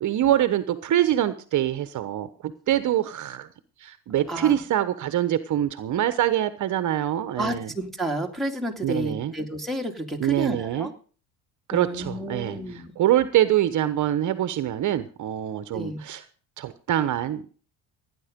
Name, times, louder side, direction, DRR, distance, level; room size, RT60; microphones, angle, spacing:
voice 1, 0.0-3.5 3.8-7.7 8.8-9.3 10.2-10.9 11.7-16.2 16.6-17.6, right 12 dB, 50° right, 11 dB, 1.1 m, -25 dB
voice 2, 7.4-10.9 11.7-12.9 15.7-16.0, right 1 dB, ahead, 0 dB, 2.5 m, -31 dB
17.0 x 9.9 x 5.3 m, 0.40 s
cardioid pair, 120°, 39 cm